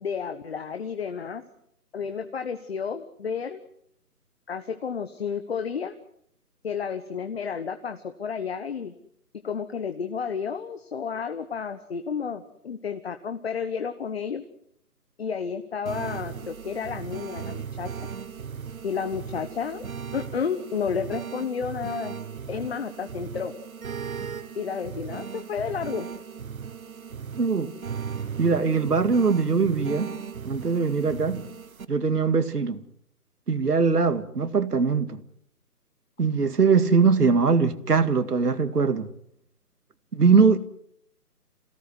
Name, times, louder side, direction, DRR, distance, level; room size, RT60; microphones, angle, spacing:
voice 1, 0.0-1.4 1.9-3.6 4.5-5.9 6.6-8.9 9.4-14.4 15.2-17.9 18.8-19.8 20.1-22.2 22.5-23.5 24.5-26.1, left 6 dB, 40° left, 1.4 m, -31 dB
sound 1, 15.9-31.9, right 7 dB, 60° right, 1.3 m, -37 dB
voice 2, 27.4-27.7 28.4-30.1 30.5-31.4 31.9-32.8 33.5-35.2 36.2-39.1 40.1-40.6, right 5 dB, 75° right, 2.3 m, -21 dB
28.0 x 17.5 x 8.1 m
figure-of-eight pair, 155°, 47 cm